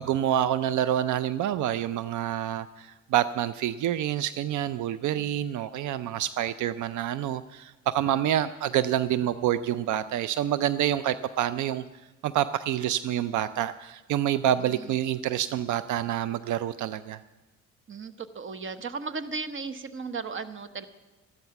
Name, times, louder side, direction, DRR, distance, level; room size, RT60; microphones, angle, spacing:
voice 1, 0.0-11.8 12.2-17.2, right 11 dB, 75° right, 14 dB, 0.5 m, -27 dB
voice 2, 17.9-20.9, right 4 dB, 40° right, 11 dB, 1.0 m, -36 dB
14.0 x 12.0 x 5.9 m, 1.2 s
cardioid pair, 90°, 30 cm